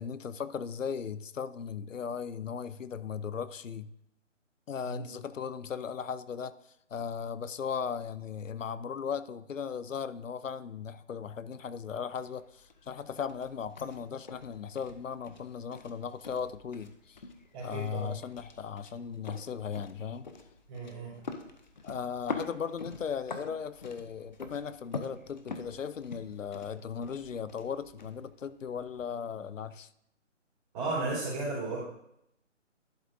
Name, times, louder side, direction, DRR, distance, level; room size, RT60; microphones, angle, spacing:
voice 1, 0.0-3.9 4.7-6.5 6.9-17.2 17.6-20.3 21.8-29.9, left 7 dB, 85° left, 15 dB, 0.6 m, -37 dB
voice 2, 4.8-5.1 17.5-18.1 20.7-21.2 30.7-31.8, right 3 dB, 20° right, -9 dB, 3.5 m, -34 dB
sound 1, 12.1-29.1, left 4 dB, 40° left, 0.6 m, -45 dB
11.0 x 6.8 x 2.6 m, 0.76 s
figure-of-eight pair, 155°, 37 cm